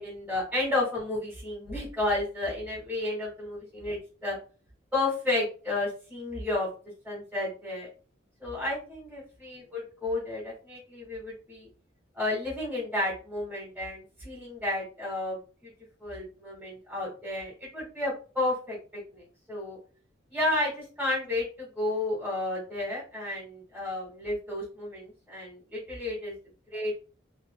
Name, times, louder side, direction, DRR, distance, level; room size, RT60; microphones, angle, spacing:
voice 1, 0.0-4.4 4.9-6.7 7.0-7.9 8.4-11.7 12.1-15.7 16.0-18.8 19.1-19.8 20.3-26.3 26.7-27.0, left 2 dB, 5° right, -7 dB, 1.9 m, -32 dB
4.3 x 3.7 x 2.2 m, 0.37 s
head